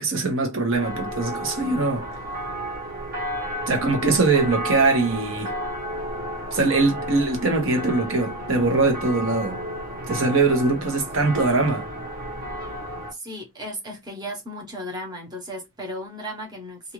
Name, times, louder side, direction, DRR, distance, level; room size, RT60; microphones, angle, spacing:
voice 1, 0.0-2.1 3.7-5.5 6.5-9.6 10.1-11.9, right 3 dB, 70° right, 1.0 m, -22 dB
sound 1, 0.7-13.1, equal, 40° right, 1.1 m, -32 dB
voice 2, 13.1-16.9, equal, 20° right, 0.9 m, -35 dB
2.5 x 2.4 x 3.0 m
head